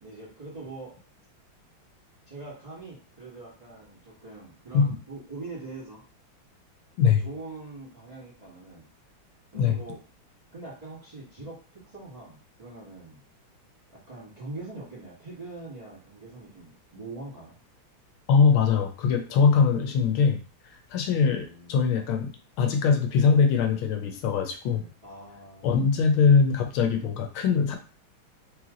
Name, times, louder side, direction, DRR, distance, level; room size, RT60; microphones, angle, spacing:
voice 1, 0.0-1.0 2.3-6.0 7.0-8.8 9.5-10.0 10.5-13.2 13.9-17.6 21.3-21.9 24.6-25.9, right 3 dB, 20° right, -6 dB, 1.6 m, -43 dB
voice 2, 18.3-20.4 20.9-22.3 22.6-24.8 25.6-27.8, left 5 dB, 90° left, 5 dB, 1.6 m, -22 dB
3.3 x 3.2 x 3.7 m, 0.37 s
omnidirectional pair, 2.2 m